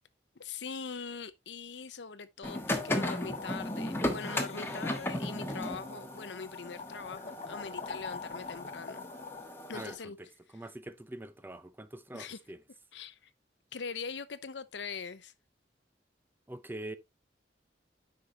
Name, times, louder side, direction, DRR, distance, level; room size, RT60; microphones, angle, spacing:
voice 1, 0.4-9.0 9.7-10.2 12.1-12.4 12.9-13.2 13.7-15.3, left 5 dB, 85° left, 0.8 m, -42 dB
sound 1, 2.4-9.9, left 1 dB, 15° left, 1.3 m, -36 dB
sound 2, 2.8-9.4, left 4 dB, 40° left, 0.6 m, -46 dB
voice 2, 4.9-5.4 9.7-10.3 10.5-12.6 16.5-17.0, right 1 dB, 10° right, 0.6 m, -44 dB
9.6 x 5.8 x 2.9 m
head